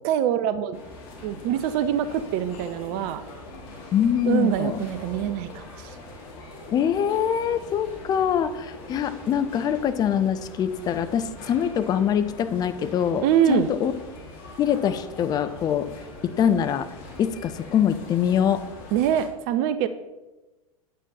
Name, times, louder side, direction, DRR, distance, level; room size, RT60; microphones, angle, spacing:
voice 1, 0.0-0.8 1.2-3.2 4.2-6.0 13.2-13.7 18.9-19.9, right 10 dB, 35° right, 12 dB, 0.5 m, -24 dB
sound 1, 0.7-19.3, left 2 dB, 45° left, 2.2 m, -42 dB
voice 2, 3.9-4.8 6.7-13.9 14.6-15.9 16.2-16.9 17.2-18.6, left 8 dB, 20° left, 11 dB, 0.6 m, -24 dB
9.0 x 8.4 x 4.1 m, 1.1 s
figure-of-eight pair, 95°, 18 cm